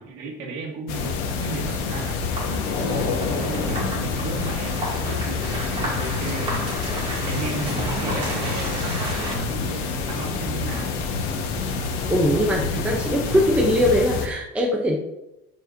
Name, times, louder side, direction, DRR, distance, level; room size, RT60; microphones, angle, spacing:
voice 1, 0.0-6.8 7.3-11.0, right 3 dB, 70° right, 0 dB, 1.9 m, -34 dB
sound 1, 0.9-14.3, left 4 dB, 80° left, 1.2 m, -27 dB
sound 2, 2.3-9.4, right 1 dB, 25° right, 2.3 m, -33 dB
voice 2, 12.1-15.0, equal, 5° right, -1 dB, 0.6 m, -21 dB
12.0 x 5.1 x 2.6 m, 0.92 s
cardioid pair, 180°, 21 cm